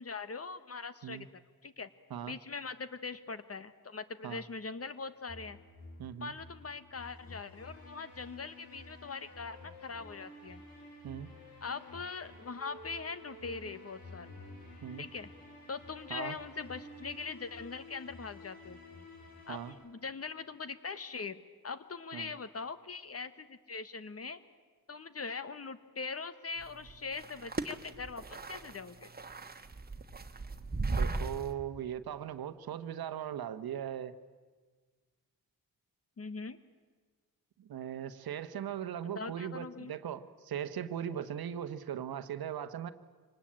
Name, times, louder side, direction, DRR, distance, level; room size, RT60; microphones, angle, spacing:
voice 1, 0.0-1.9 2.3-5.6 6.2-10.6 11.6-14.3 15.0-15.3 15.7-18.8 19.5-21.4 21.6-24.4 24.9-29.1 36.2-36.6 39.1-39.9, left 4 dB, 40° left, 13 dB, 1.3 m, -42 dB
sound 1, 5.3-19.7, left 2 dB, 85° left, 7.7 m, -51 dB
voice 2, 6.0-6.3 11.0-11.3 14.8-15.1 16.1-16.4 19.5-19.7 22.1-22.3 30.9-34.1 37.6-42.9, right 9 dB, 80° right, 12 dB, 1.1 m, -39 dB
sound 2, 26.6-31.5, right 3 dB, 25° right, 1.4 m, -37 dB
25.0 x 19.0 x 8.7 m, 1.5 s
cardioid pair, 80°, 36 cm